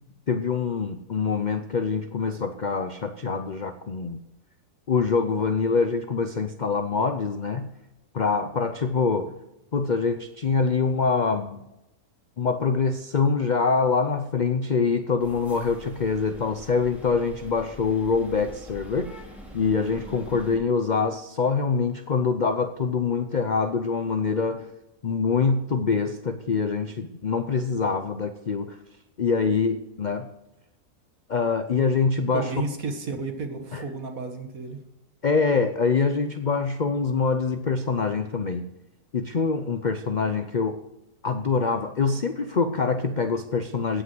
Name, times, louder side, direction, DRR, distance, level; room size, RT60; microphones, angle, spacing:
voice 1, 0.3-4.2 4.9-7.7 8.1-9.3 9.7-11.6 12.4-19.1 19.5-24.7 25.0-28.8 29.2-30.3 31.3-32.5 33.7-33.8 35.2-38.7 39.1-40.8 41.2-44.0, left 5 dB, 65° left, 9 dB, 0.4 m, -25 dB
sound 1, 15.2-20.6, equal, ahead, 2.7 m, -44 dB
voice 2, 32.3-34.8, right 4 dB, 55° right, 5 dB, 2.0 m, -32 dB
16.5 x 5.9 x 7.7 m, 0.93 s
omnidirectional pair, 1.7 m